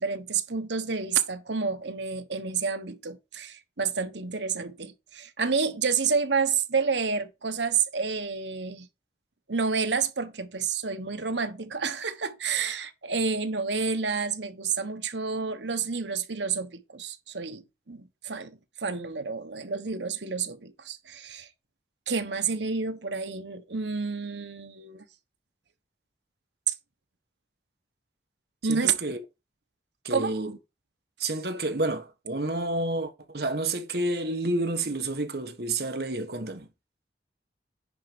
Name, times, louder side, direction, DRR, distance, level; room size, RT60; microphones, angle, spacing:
voice 1, 0.0-8.9 9.5-21.5 22.1-25.0 26.7-26.8 28.6-29.0 30.1-30.4, right 5 dB, 80° right, 1.2 m, -29 dB
voice 2, 28.7-29.2 30.0-30.6 31.2-36.7, right 2 dB, 60° right, 1.5 m, -30 dB
10.0 x 4.4 x 5.2 m
head